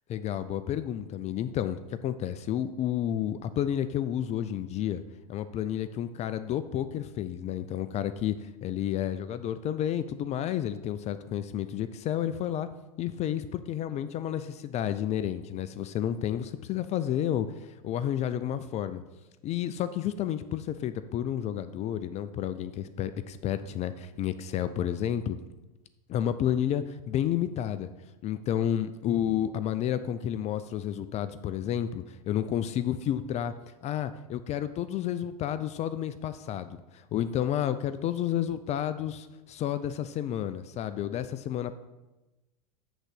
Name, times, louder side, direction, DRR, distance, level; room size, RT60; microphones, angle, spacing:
voice 1, 0.1-5.0 5.3-8.3 8.6-12.7 13.0-17.5 17.8-19.0 19.4-25.4 26.1-27.9 28.2-33.5 33.8-36.8 37.1-41.7, left 10 dB, 35° left, 12 dB, 0.4 m, -31 dB
7.9 x 3.9 x 6.3 m, 1.1 s
hypercardioid pair, 100°, 20 cm